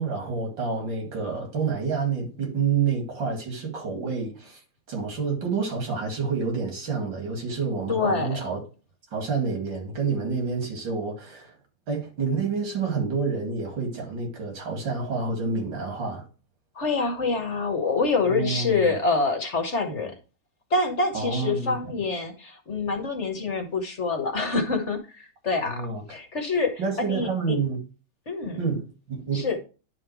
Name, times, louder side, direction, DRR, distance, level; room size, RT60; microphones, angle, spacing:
voice 1, 0.0-4.6 4.9-8.6 9.1-11.6 11.9-16.2 18.2-18.9 19.9-20.0 21.1-21.8 25.6-26.0 26.8-27.8 28.6-29.6, right 5 dB, 80° right, 2.9 m, -28 dB
voice 2, 7.9-8.4 16.8-20.1 20.7-25.8 26.1-26.7 27.0-27.6 28.3-28.6 29.3-29.6, left 4 dB, 45° left, 1.3 m, -26 dB
10.5 x 3.6 x 4.6 m
omnidirectional pair, 2.0 m